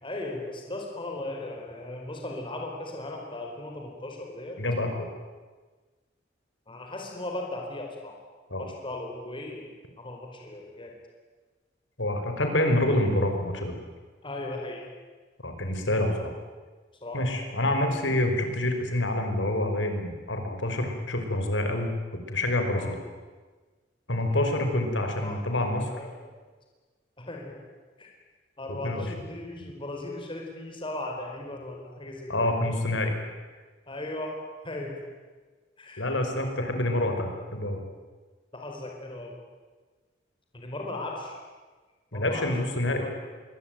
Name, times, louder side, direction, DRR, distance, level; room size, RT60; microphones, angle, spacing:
voice 1, 0.0-4.6 4.9-5.1 6.7-8.2 8.6-9.7 10.0-10.9 14.2-14.8 17.0-17.4 17.8-18.0 22.7-22.9 24.2-24.5 25.0-25.6 26.0-26.1 27.2-27.6 28.0-28.1 28.6-32.6 33.9-34.4 34.6-34.9 35.8-36.1 38.5-39.3 40.5-41.4 42.1-42.6 43.0-43.2, left 2 dB, 25° left, 1 dB, 4.5 m, -37 dB
voice 2, 4.6-5.1 8.5-8.7 12.0-13.8 15.4-16.4 17.1-21.9 22.3-23.0 24.1-26.0 28.7-29.1 32.3-33.2 36.0-37.8 42.1-43.2, left 1 dB, 75° left, 5 dB, 5.3 m, -27 dB
26.5 x 23.0 x 9.3 m, 1.4 s
head